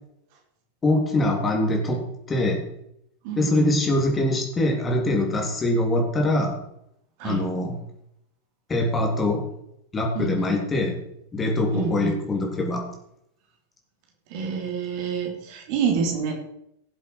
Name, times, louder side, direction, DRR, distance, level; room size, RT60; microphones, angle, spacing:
voice 1, 0.8-2.6 3.4-6.6 7.2-7.8 8.7-9.4 9.9-11.0 11.3-12.9, left 1 dB, 20° left, 1 dB, 3.1 m, -23 dB
voice 2, 3.2-3.9 7.2-7.5 10.1-10.6 11.7-12.2 14.3-16.3, right 6 dB, 45° right, 3 dB, 2.5 m, -27 dB
17.0 x 7.6 x 4.5 m, 0.77 s
figure-of-eight pair, 90°, 0 cm